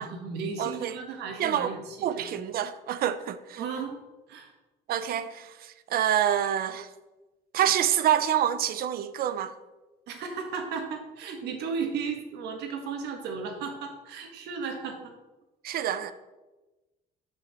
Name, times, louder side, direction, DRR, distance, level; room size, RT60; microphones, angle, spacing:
voice 1, 0.0-2.4 3.6-4.0 4.3-4.5 10.1-15.1, right 5 dB, 80° right, 1.6 m, -35 dB
voice 2, 0.6-1.0 1.4-1.7 2.0-3.6 4.9-6.9 7.5-9.5 15.6-16.1, right 10 dB, 60° right, 0.6 m, -27 dB
6.7 x 5.7 x 5.7 m
cardioid pair, 110°, 17 cm